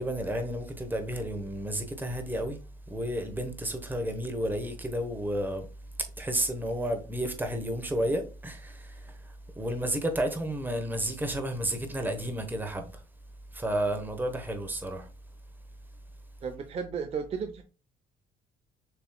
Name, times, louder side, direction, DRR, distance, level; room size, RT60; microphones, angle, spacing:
voice 1, 0.0-2.6 2.9-5.7 6.2-9.2 9.6-12.9 13.5-15.1, right 1 dB, 10° right, 1.0 m, -31 dB
voice 2, 16.4-17.6, right 6 dB, 35° right, 0.6 m, -34 dB
6.8 x 3.0 x 2.2 m
cardioid pair, 110°, 17 cm